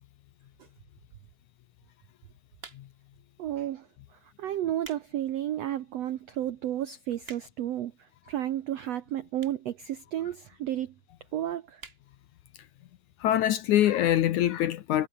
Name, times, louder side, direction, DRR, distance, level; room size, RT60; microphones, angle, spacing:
sound 1, 2.6-3.1 3.8-4.0 4.6-5.1 5.5-5.6 6.2-6.3 6.5-6.6 6.9-7.7 8.5-8.6 9.4-9.7 10.0-10.1 10.3-10.4 10.6-10.7 11.0-11.3 11.7-12.0 12.4-12.5 12.7-12.8, right 4 dB, 35° right, 0.9 m, -48 dB
voice 1, 3.4-3.9 4.4-7.9 8.3-10.9 11.3-11.8, right 12 dB, 80° right, 1.5 m, -32 dB
voice 2, 13.2-15.1, left 12 dB, 70° left, 2.0 m, -24 dB
omnidirectional pair, 4.3 m